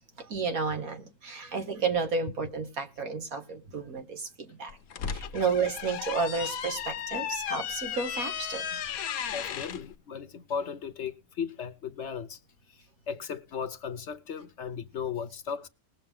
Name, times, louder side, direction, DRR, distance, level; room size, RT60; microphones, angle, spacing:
voice 1, 0.2-4.7 5.1-8.6, right 5 dB, 80° right, 2.2 m, -31 dB
sound 1, 4.7-9.8, left 8 dB, 80° left, 1.3 m, -35 dB
voice 2, 9.3-12.4 12.7-15.7, left 6 dB, 60° left, 1.0 m, -36 dB
20.0 x 6.8 x 3.7 m
omnidirectional pair, 1.5 m